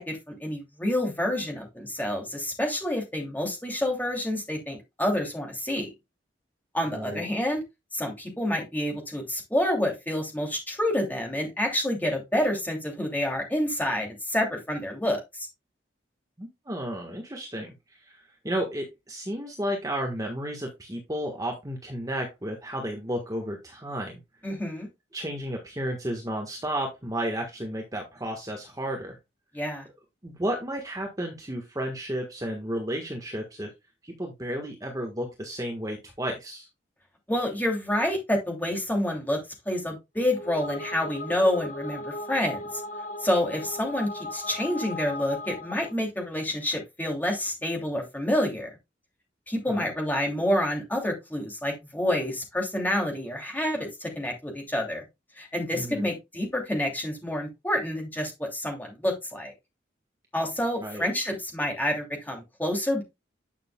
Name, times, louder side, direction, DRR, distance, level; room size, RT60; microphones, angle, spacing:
voice 1, 0.0-5.9 6.7-7.6 7.9-15.5 24.4-24.9 29.5-29.9 37.3-39.4 39.6-42.8 43.2-48.7 49.5-55.0 55.4-59.5 60.3-63.0, left 1 dB, 10° left, 1 dB, 2.8 m, -28 dB
voice 2, 6.9-7.2 16.4-24.2 25.1-29.2 30.2-33.7 34.0-36.7 49.7-49.9 55.7-56.1 60.8-61.1, right 1 dB, 20° right, 1 dB, 1.4 m, -32 dB
sound 1, 40.2-46.0, left 2 dB, 45° left, 1.1 m, -37 dB
10.0 x 6.6 x 2.3 m, 0.22 s
head